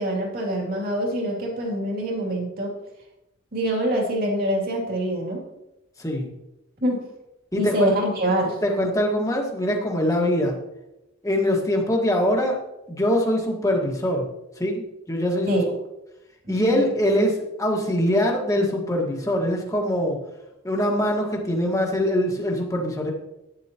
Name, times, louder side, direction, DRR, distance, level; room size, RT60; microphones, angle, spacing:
voice 1, 0.0-2.7 3.5-5.4 6.8-7.0 7.6-8.6 15.5-15.7 16.4-16.8, right 1 dB, 45° right, -1 dB, 2.7 m, -25 dB
voice 2, 6.0-6.3 7.5-7.9 8.6-10.6 11.2-12.6 12.9-14.2 14.6-15.6 16.5-20.2 20.6-23.1, equal, 15° left, 0 dB, 1.7 m, -23 dB
12.0 x 9.9 x 3.0 m, 0.93 s
head